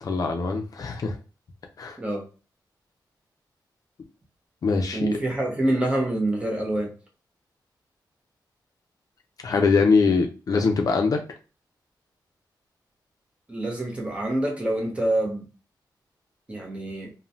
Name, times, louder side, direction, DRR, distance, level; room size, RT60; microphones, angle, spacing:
voice 1, 0.0-1.2 1.8-2.0 4.6-5.1 9.4-11.2, left 4 dB, 50° left, 0.5 m, -22 dB
voice 2, 4.9-6.9 13.5-15.4 16.5-17.1, right 1 dB, 15° right, 0.8 m, -26 dB
3.0 x 2.1 x 2.6 m
wide cardioid pair, 155°, 8 cm